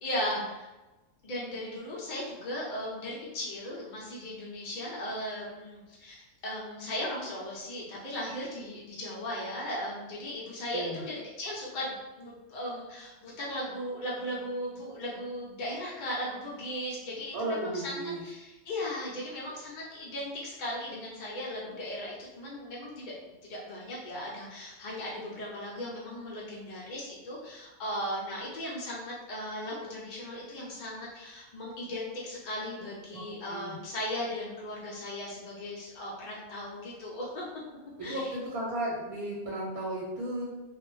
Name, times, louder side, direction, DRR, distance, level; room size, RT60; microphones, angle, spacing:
voice 1, 0.0-0.7 1.2-6.2 6.4-23.1 23.5-37.4 38.0-38.3, left 1 dB, 60° left, -5 dB, 0.4 m, -37 dB
voice 2, 10.7-11.0 17.3-18.2 33.1-33.2 33.5-33.8 38.0-40.4, right 1 dB, 85° right, -4 dB, 1.1 m, -34 dB
2.4 x 2.0 x 3.0 m, 1.1 s
omnidirectional pair, 1.5 m